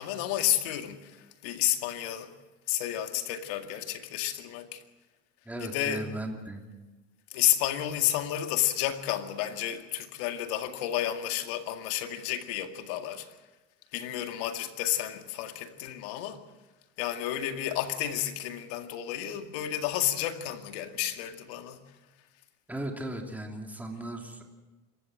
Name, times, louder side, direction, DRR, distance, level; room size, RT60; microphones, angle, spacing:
voice 1, 0.0-2.3 2.7-4.8 5.6-6.1 7.3-13.3 13.9-16.4 17.0-21.8, left 12 dB, 80° left, 2.2 m, -31 dB
voice 2, 5.4-6.6 22.7-24.4, right 1 dB, 5° right, 3.0 m, -37 dB
26.5 x 15.0 x 7.6 m
supercardioid pair, 115°, 36 cm